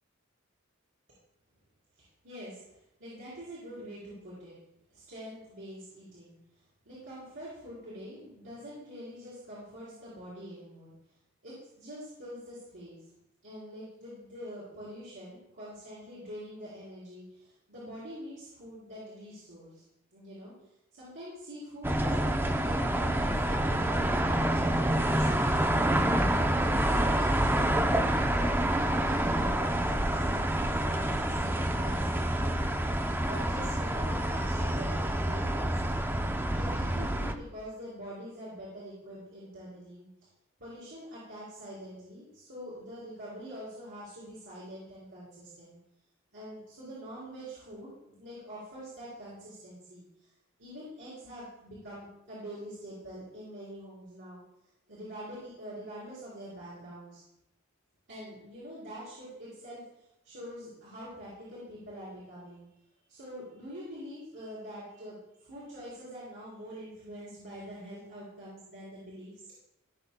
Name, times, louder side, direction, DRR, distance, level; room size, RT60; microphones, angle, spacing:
voice 1, 1.9-4.6 4.9-10.9 11.4-13.1 13.4-19.8 20.1-20.5 20.9-25.8 26.2-33.0 33.2-35.9 36.5-40.1 40.6-45.8 46.3-50.3 50.6-54.4 54.9-57.2 58.1-62.7 63.1-69.5, equal, 65° right, -9 dB, 3.6 m, -45 dB
sound 1, 21.8-37.3, right 1 dB, 10° right, 0.5 m, -27 dB
16.0 x 6.9 x 2.2 m, 0.85 s
head